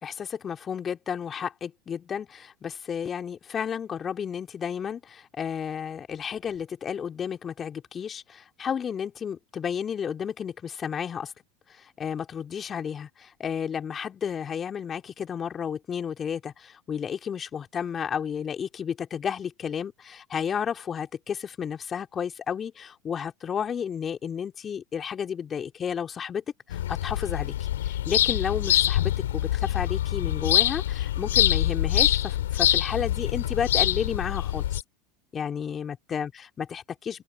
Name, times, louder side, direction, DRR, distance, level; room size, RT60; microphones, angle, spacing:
voice 1, 0.0-11.3 11.7-27.5 27.8-34.6 35.3-36.3 36.6-37.2, left 7 dB, 30° left, 3.7 m, -32 dB
sound 1, 26.7-34.8, left 12 dB, 75° left, 3.0 m, -25 dB
hypercardioid pair, 80°, 0 cm